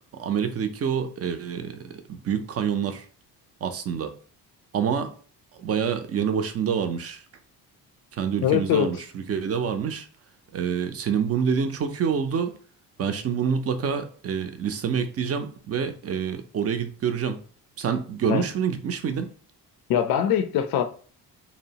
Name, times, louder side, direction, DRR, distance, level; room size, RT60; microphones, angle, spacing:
voice 1, 0.1-3.1 3.6-4.1 4.7-5.1 5.5-7.2 8.1-10.1 10.5-12.5 13.0-17.4 17.8-19.3, right 7 dB, 40° right, 9 dB, 0.5 m, -27 dB
voice 2, 8.4-8.9 18.3-18.4 19.9-20.8, left 9 dB, 60° left, 8 dB, 0.5 m, -22 dB
2.7 x 2.0 x 2.7 m, 0.42 s
supercardioid pair, 70°, 40 cm